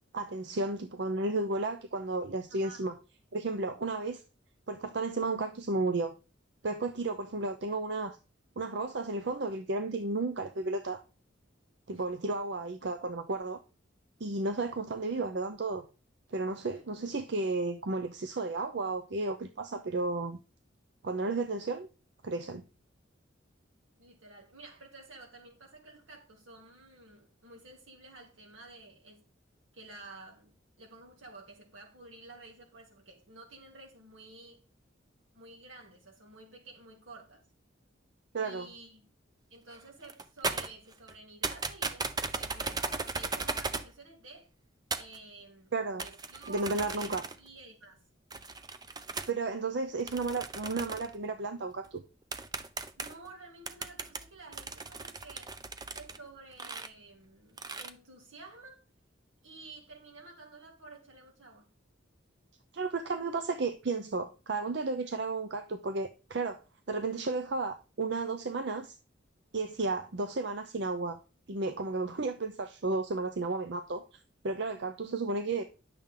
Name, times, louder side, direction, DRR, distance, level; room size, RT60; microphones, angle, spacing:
voice 1, 0.1-2.9 3.3-4.2 4.7-6.1 6.6-8.2 8.6-11.0 11.9-13.6 14.2-15.8 16.3-20.4 21.0-21.9 22.2-22.6 38.3-38.7 45.7-46.0 46.5-47.2 49.3-52.0 62.7-66.6 66.9-68.9 69.5-71.2 71.5-74.0 74.4-75.6, right 3 dB, 60° right, 0.6 m, -33 dB
voice 2, 2.5-2.8 11.9-12.1 16.7-16.8 24.0-29.3 29.7-30.5 30.8-34.6 35.3-37.4 38.4-39.1 39.5-44.5 45.0-48.0 53.0-55.6 55.9-58.8 59.4-61.7, right 3 dB, 85° right, 2.8 m, -51 dB
sound 1, 39.7-39.8 40.0-41.2 41.4-43.9 44.9-45.2 46.0-47.5 48.3-49.3 50.1-51.2 51.8-51.9 52.3-53.3 53.7-56.2 56.5-56.9 57.6-57.9, right 4 dB, 20° right, 0.5 m, -37 dB
10.5 x 6.8 x 3.8 m
head